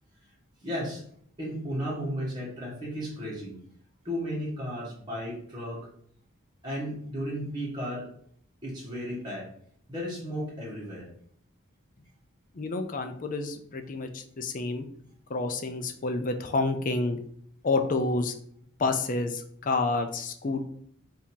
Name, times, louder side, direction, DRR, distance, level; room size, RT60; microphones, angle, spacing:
voice 1, 0.6-1.0 1.4-3.6 4.0-5.9 6.6-8.1 8.6-9.5 9.9-11.1, equal, 20° right, -7 dB, 1.5 m, -34 dB
voice 2, 12.6-14.9 15.3-17.2 17.6-18.3 18.8-20.6, left 3 dB, 40° left, 6 dB, 0.5 m, -29 dB
3.7 x 2.8 x 4.4 m, 0.62 s
head